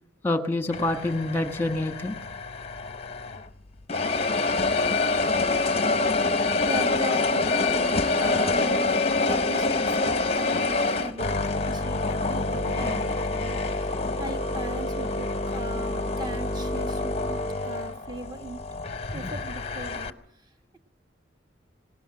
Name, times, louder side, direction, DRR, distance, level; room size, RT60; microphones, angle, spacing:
voice 1, 0.2-2.2 19.1-19.3, left 2 dB, 10° left, 7 dB, 1.4 m, -27 dB
sound 1, 0.7-3.5 3.9-20.1, left 3 dB, 30° left, 0.7 m, -26 dB
voice 2, 6.6-18.7 19.1-20.8, right 2 dB, 20° right, 6 dB, 1.4 m, -39 dB
19.0 x 18.5 x 7.6 m, 0.71 s
head